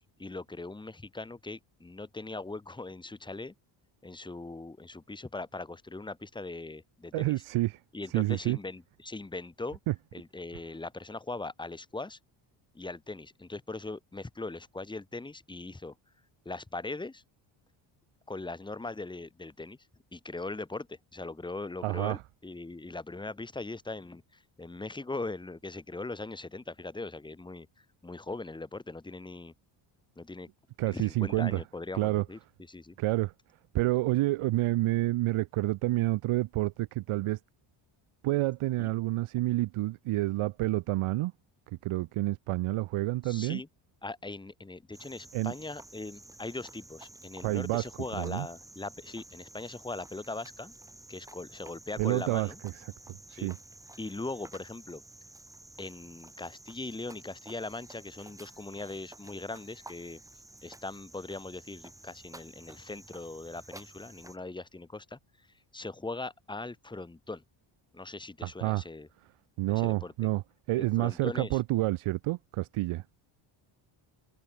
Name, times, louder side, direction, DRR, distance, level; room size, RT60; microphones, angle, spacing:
voice 1, 0.0-3.5 4.0-7.3 7.9-9.8 10.1-12.2 12.7-15.9 16.4-17.2 18.3-19.8 20.1-29.5 30.2-30.5 30.9-32.4 32.7-33.0 38.8-38.9 43.2-43.7 44.0-50.8 51.1-52.6 53.4-53.5 54.0-55.0 55.8-60.2 60.6-65.5 65.7-67.4 67.9-69.1 69.7-70.1 70.8-71.6, left 3 dB, 10° left, 2.6 m, -40 dB
voice 2, 7.1-7.8 8.1-8.6 9.9-10.0 21.8-22.2 30.8-31.6 31.9-32.2 33.0-33.3 33.7-37.4 38.2-41.3 41.8-43.6 45.3-45.5 47.4-47.9 48.1-48.5 52.0-52.5 53.3-53.6 68.4-68.8 69.6-70.4 70.7-73.0, right 18 dB, 90° right, 2.9 m, -28 dB
Cricket, 44.9-64.4, right 1 dB, 5° right, 6.6 m, -52 dB
cardioid pair, 170°, 48 cm